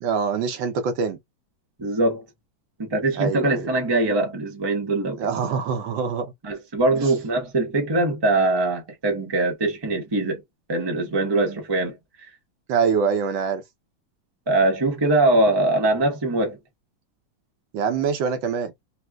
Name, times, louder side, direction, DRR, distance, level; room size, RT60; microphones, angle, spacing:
voice 1, 0.0-1.2 3.2-3.7 5.2-6.3 7.0-7.1 12.7-13.6 17.7-18.7, right 6 dB, 70° right, 1.3 m, -24 dB
voice 2, 1.8-2.2 2.8-5.2 6.4-10.4 10.7-12.3 14.5-16.6, right 2 dB, 25° right, 0.5 m, -22 dB
4.2 x 2.1 x 2.3 m
omnidirectional pair, 2.4 m